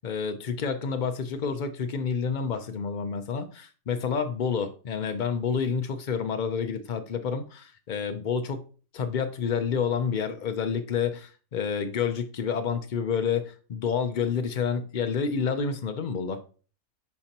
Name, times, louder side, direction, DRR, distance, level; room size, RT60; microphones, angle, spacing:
voice 1, 0.0-8.7 8.9-16.4, left 6 dB, 70° left, 0.4 m, -29 dB
10.0 x 4.4 x 2.9 m
omnidirectional pair, 1.6 m